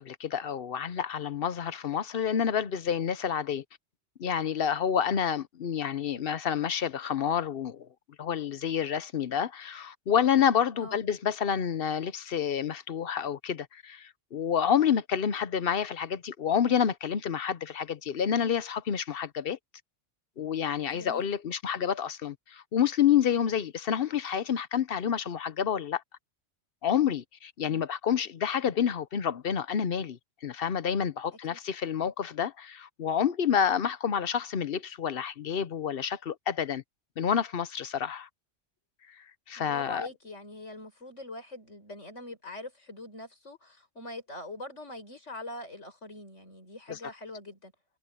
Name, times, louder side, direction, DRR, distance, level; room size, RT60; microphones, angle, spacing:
voice 1, 0.0-3.6 4.2-7.9 8.2-19.6 20.4-26.0 26.8-36.8 37.2-38.3 39.5-40.1 46.9-47.0, left 8 dB, 55° left, 0.9 m, -28 dB
voice 2, 20.9-21.3 27.6-27.9 31.5-31.6 39.6-47.7, left 2 dB, 90° left, 6.2 m, -43 dB
omnidirectional pair, 1.2 m